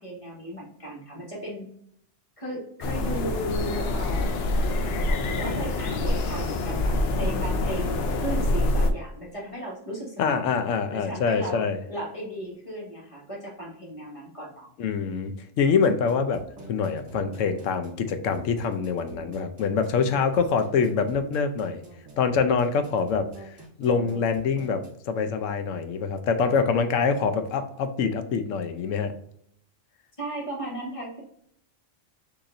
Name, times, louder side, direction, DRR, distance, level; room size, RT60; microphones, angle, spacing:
voice 1, 0.0-1.7 2.4-4.4 5.2-10.4 10.9-14.7 30.2-31.2, right 1 dB, 25° left, -3 dB, 1.5 m, -36 dB
sound 1, 2.8-8.9, left 2 dB, 60° left, 0.8 m, -26 dB
voice 2, 10.2-11.8 14.8-16.4 16.7-21.8 22.2-23.5 23.8-29.1, left 5 dB, 85° left, 8 dB, 1.0 m, -25 dB
sound 2, 15.6-24.9, right 2 dB, 40° right, 1.4 m, -45 dB
6.5 x 3.0 x 2.5 m, 0.70 s
omnidirectional pair, 1.3 m